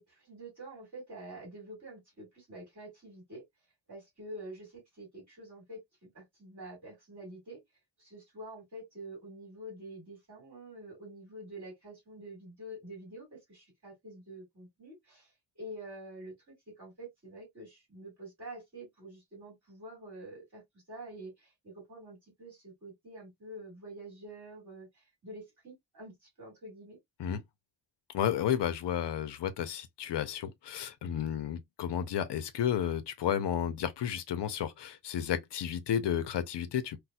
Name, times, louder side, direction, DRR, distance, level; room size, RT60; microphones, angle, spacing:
voice 1, 0.0-3.4 3.9-7.6 8.0-20.6 20.9-27.0, right 1 dB, 40° right, 2.3 m, -47 dB
voice 2, 28.1-37.0, left 9 dB, 65° left, 0.6 m, -32 dB
4.1 x 2.2 x 2.2 m
wide cardioid pair, 170°, 46 cm